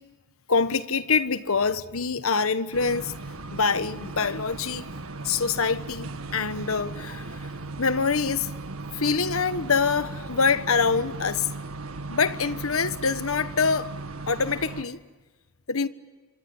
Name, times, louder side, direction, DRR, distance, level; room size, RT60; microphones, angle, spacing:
voice 1, 0.5-3.1 3.5-4.9 5.2-7.5 7.8-8.5 8.9-11.5 12.1-13.9 14.3-15.0 15.7-15.9, left 5 dB, 75° left, 1.3 m, -25 dB
sound 1, 2.7-14.8, right 3 dB, 80° right, 1.8 m, -37 dB
28.0 x 25.5 x 8.0 m
head